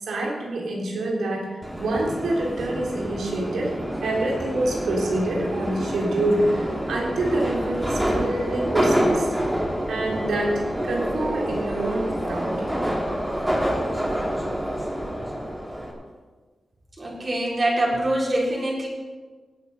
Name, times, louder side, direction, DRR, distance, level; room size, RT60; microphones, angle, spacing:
voice 1, 0.1-9.3 9.9-12.6, right 1 dB, 90° right, -1 dB, 3.1 m, -26 dB
Subway metro underground, 1.6-15.9, equal, 10° right, 3.2 m, -27 dB
voice 2, 17.0-18.9, right 1 dB, 45° right, -4 dB, 3.9 m, -24 dB
17.0 x 8.2 x 5.5 m, 1.4 s
cardioid pair, 60°, 0 cm